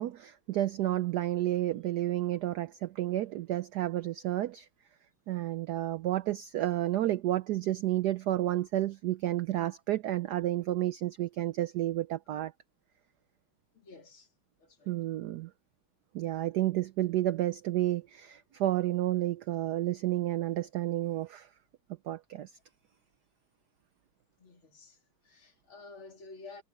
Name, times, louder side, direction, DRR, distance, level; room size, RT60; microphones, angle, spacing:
voice 1, 0.0-4.7 5.3-12.5 14.9-15.5 16.1-21.5 22.1-22.5, right 14 dB, 80° right, 0.9 m, -31 dB
voice 2, 13.7-14.3 14.6-14.9 24.4-26.6, left 3 dB, 75° left, 4.0 m, -51 dB
omnidirectional pair, 2.3 m